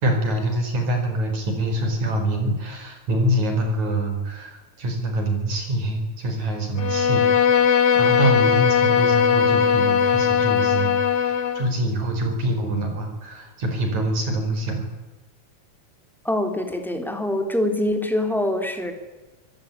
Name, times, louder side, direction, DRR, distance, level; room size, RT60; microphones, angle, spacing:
voice 1, 0.0-14.9, right 1 dB, 70° right, 5 dB, 6.0 m, -25 dB
Bowed string instrument, 6.8-11.7, left 7 dB, 55° left, 2.6 m, -19 dB
voice 2, 16.2-18.9, left 1 dB, ahead, 5 dB, 3.0 m, -24 dB
25.5 x 17.0 x 9.6 m, 1.2 s
omnidirectional pair, 3.4 m